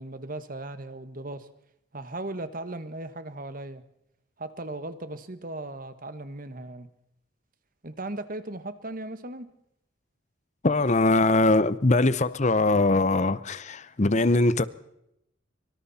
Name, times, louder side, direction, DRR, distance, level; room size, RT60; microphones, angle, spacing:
voice 1, 0.0-1.5 1.9-3.8 4.4-6.9 7.8-9.5, right 2 dB, 45° right, 1.5 m, -37 dB
voice 2, 10.6-14.6, left 2 dB, 35° left, 0.8 m, -22 dB
25.0 x 24.5 x 4.3 m
head